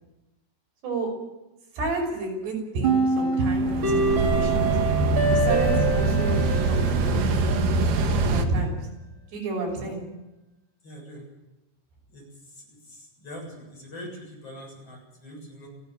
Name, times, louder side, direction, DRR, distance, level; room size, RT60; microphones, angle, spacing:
voice 1, 1.7-4.8 5.3-7.2 8.3-8.8 9.3-10.0, right 3 dB, 80° right, 0 dB, 8.2 m, -30 dB
sound 1, 2.8-7.9, right 2 dB, 35° right, 2.8 m, -25 dB
sound 2, 3.4-8.5, right 3 dB, 60° right, 2.9 m, -23 dB
voice 2, 10.8-11.2 12.1-12.2 12.9-15.7, equal, 35° left, -1 dB, 8.3 m, -42 dB
30.0 x 10.5 x 9.1 m, 0.99 s
omnidirectional pair, 4.7 m